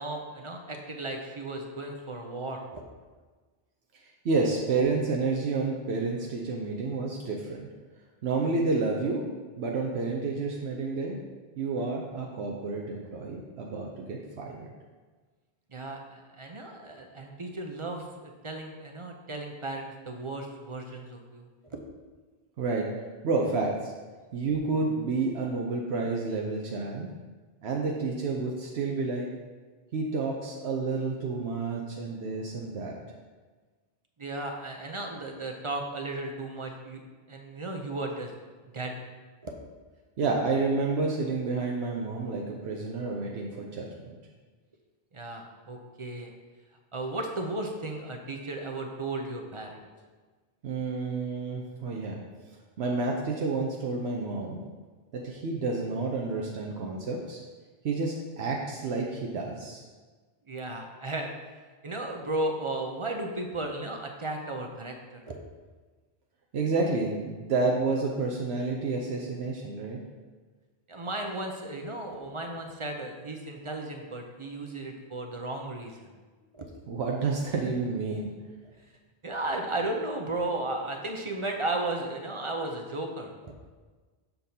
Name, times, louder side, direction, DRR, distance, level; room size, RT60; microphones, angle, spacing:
voice 1, 0.0-2.8 15.7-21.8 34.2-37.0 37.3-38.3 38.7-39.0 39.4-39.5 45.1-46.3 46.9-49.8 60.5-61.3 61.8-65.4 70.9-76.1 76.5-76.7 79.2-83.5, right 2 dB, 40° right, 3 dB, 0.5 m, -35 dB
voice 2, 4.2-7.7 8.2-9.2 9.6-11.2 11.6-14.7 22.6-22.9 23.2-23.9 24.3-27.1 27.6-29.3 29.9-33.0 40.2-44.2 50.6-52.2 52.8-54.6 55.1-57.4 57.8-59.8 66.5-70.0 76.9-78.3, right 3 dB, 75° right, -1 dB, 0.9 m, -30 dB
6.8 x 5.9 x 2.7 m, 1.4 s
omnidirectional pair, 1.1 m